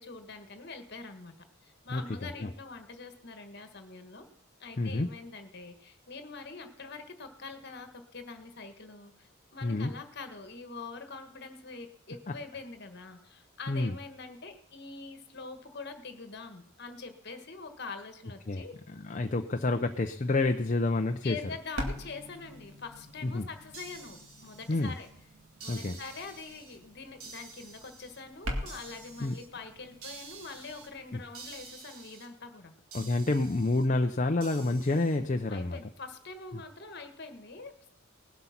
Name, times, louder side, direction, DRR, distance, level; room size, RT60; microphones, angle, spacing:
voice 1, 0.0-1.4 1.6-4.3 4.6-18.7 21.2-25.1 25.6-32.7 35.5-37.9, left 4 dB, 50° left, 7 dB, 1.5 m, -44 dB
voice 2, 1.9-2.5 4.8-5.1 9.6-9.9 12.3-12.4 13.7-13.9 18.5-21.4 23.2-23.4 24.7-24.9 25.7-26.0 29.2-29.3 31.1-31.2 32.9-35.8, left 2 dB, 35° left, 6 dB, 0.5 m, -29 dB
sound 1, 21.5-31.7, equal, 65° right, 2.2 m, -44 dB
sound 2, 23.7-25.1 25.6-26.8 27.2-28.2 28.7-29.5 30.0-30.9 31.3-32.3 32.9-33.9 34.4-35.2, right 4 dB, 85° right, 2.6 m, -49 dB
19.0 x 8.1 x 5.8 m, 0.70 s
head